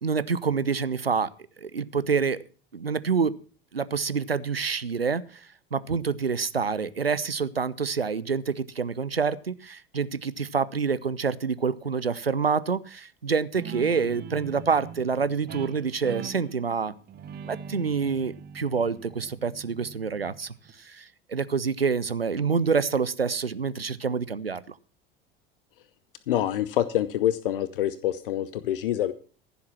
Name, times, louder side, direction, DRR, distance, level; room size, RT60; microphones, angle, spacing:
voice 1, 0.0-1.3 1.6-2.4 2.7-3.3 3.7-5.2 5.7-16.9 17.4-24.8, right 5 dB, 90° right, 17 dB, 0.6 m, -27 dB
Guitar, 13.5-20.7, right 7 dB, 35° right, 1.3 m, -41 dB
voice 2, 26.3-29.1, left 12 dB, 65° left, 16 dB, 0.8 m, -26 dB
15.0 x 7.2 x 6.0 m, 0.39 s
figure-of-eight pair, 70°, 29 cm